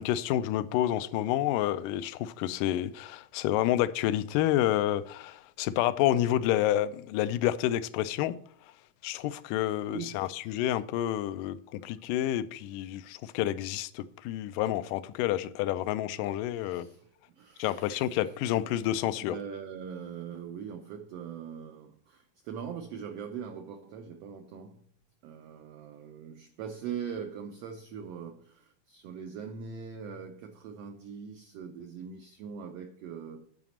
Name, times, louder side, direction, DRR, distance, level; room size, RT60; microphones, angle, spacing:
voice 1, 0.0-8.4 9.0-16.9 17.6-19.4, left 13 dB, 90° left, 2.2 m, -29 dB
voice 2, 9.9-10.5 16.6-17.1 17.4-18.3 19.2-24.8 25.2-33.5, right 7 dB, 90° right, 1.3 m, -41 dB
9.3 x 4.9 x 7.1 m
omnidirectional pair, 3.7 m